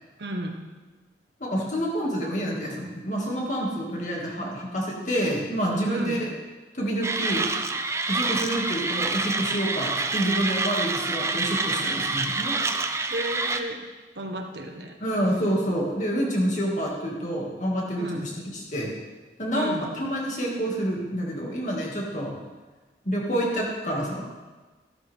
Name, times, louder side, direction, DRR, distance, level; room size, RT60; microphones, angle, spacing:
voice 1, 0.2-0.6 5.8-6.2 13.1-13.8 14.1-14.9 17.9-18.3 19.5-19.9, right 1 dB, 80° right, 3 dB, 1.5 m, -33 dB
voice 2, 1.4-6.3 6.7-7.5 8.1-12.6 15.0-18.9 19.4-22.3 23.0-24.2, equal, 45° left, -2 dB, 2.5 m, -28 dB
Mechanisms, 7.0-13.6, right 3 dB, 15° right, 0.5 m, -27 dB
13.5 x 12.0 x 3.7 m, 1.3 s
head